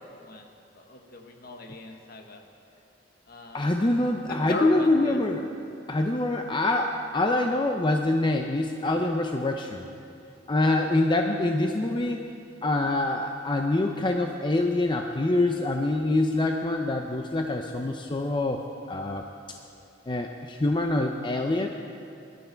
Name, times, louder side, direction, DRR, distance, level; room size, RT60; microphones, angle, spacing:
voice 1, 0.1-0.5 0.7-2.4 3.3-3.7 4.2-5.2, left 2 dB, 55° left, 3 dB, 1.4 m, -38 dB
voice 2, 3.5-5.5 5.9-9.8 10.5-12.2 12.6-18.6 18.9-19.2 20.1-21.7, left 2 dB, 25° left, 3 dB, 0.6 m, -25 dB
20.5 x 12.0 x 4.5 m, 2.6 s
head